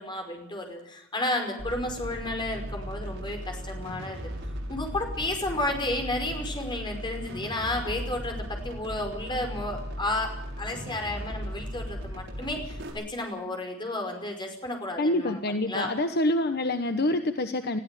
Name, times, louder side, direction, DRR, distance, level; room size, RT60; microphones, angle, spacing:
voice 1, 0.0-4.2 4.7-15.4 15.7-15.9, left 1 dB, 25° left, 4 dB, 5.2 m, -32 dB
sound 1, 1.6-12.9, equal, 60° right, 6.6 m, -37 dB
voice 2, 15.0-17.8, left 1 dB, 50° left, 8 dB, 1.1 m, -26 dB
21.5 x 14.5 x 9.1 m, 0.80 s
head